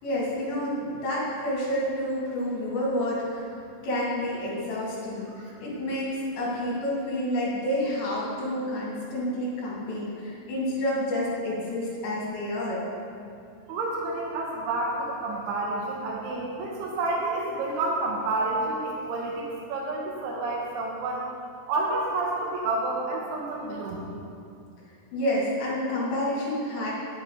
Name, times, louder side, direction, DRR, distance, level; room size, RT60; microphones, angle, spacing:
voice 1, 0.0-3.5 3.8-12.8 25.1-26.9, left 1 dB, 60° left, -7 dB, 5.0 m, -29 dB
voice 2, 13.7-21.2 21.7-24.0, right 2 dB, 70° right, -3 dB, 2.6 m, -29 dB
9.8 x 9.7 x 5.1 m, 2.5 s
omnidirectional pair, 6.0 m